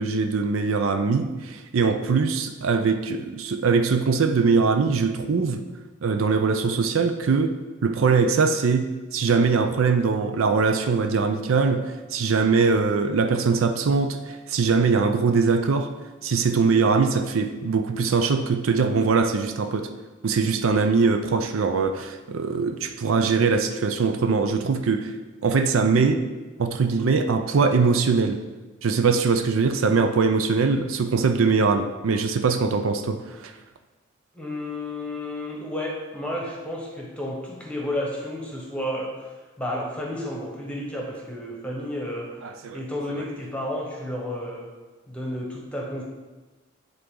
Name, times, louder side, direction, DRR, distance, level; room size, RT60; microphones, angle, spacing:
voice 1, 0.0-5.6 6.0-7.5 7.8-11.8 12.1-15.9 16.2-19.9 20.2-25.1 25.4-26.2 26.6-28.4 28.8-33.5 42.4-42.8, right 4 dB, 80° right, 7 dB, 0.5 m, -22 dB
voice 2, 34.3-39.1 39.6-42.4 42.7-44.7 45.1-46.0, left 1 dB, 5° left, -1 dB, 1.1 m, -31 dB
9.6 x 3.9 x 3.8 m, 1.2 s
head